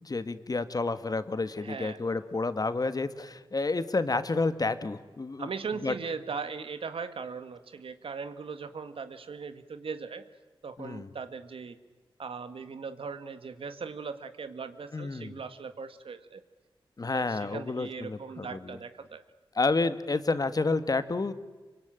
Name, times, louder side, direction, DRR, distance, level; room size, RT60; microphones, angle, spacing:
voice 1, 0.0-5.5 5.8-5.9 10.8-11.1 14.9-15.4 17.0-18.8 19.5-21.3, left 3 dB, 40° left, 12 dB, 1.6 m, -30 dB
voice 2, 1.6-2.0 5.4-10.2 10.6-11.8 12.2-16.4 17.1-19.2, right 5 dB, 75° right, 11 dB, 1.7 m, -39 dB
26.0 x 24.0 x 9.0 m, 1.2 s
cardioid pair, 65°, 9 cm